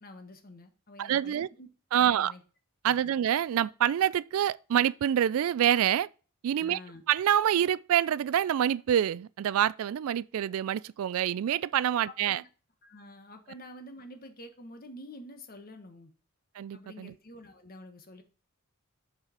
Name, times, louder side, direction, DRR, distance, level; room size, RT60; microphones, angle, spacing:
voice 1, 0.0-2.4 2.8-3.2 6.6-7.0 12.0-12.5 12.8-16.1 16.7-18.2, left 1 dB, 40° left, 1.4 m, -48 dB
voice 2, 1.0-1.5 1.9-2.3 2.8-6.1 6.4-6.8 7.1-12.4 16.6-17.1, right 10 dB, 65° right, 0.3 m, -26 dB
7.3 x 4.9 x 5.8 m
head